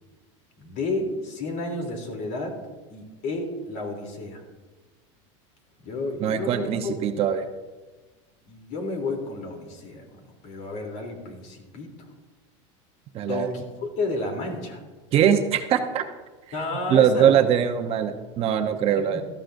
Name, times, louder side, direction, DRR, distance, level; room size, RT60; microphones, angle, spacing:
voice 1, 0.6-2.6 2.9-4.4 5.8-6.9 8.5-11.9 13.2-14.8 16.5-17.4, left 2 dB, 55° left, 2 dB, 3.3 m, -31 dB
voice 2, 6.2-7.5 13.1-13.5 15.1-16.0 16.9-19.2, right 9 dB, 40° right, 6 dB, 0.9 m, -22 dB
17.5 x 13.5 x 2.6 m, 1.3 s
supercardioid pair, 135°, 16 cm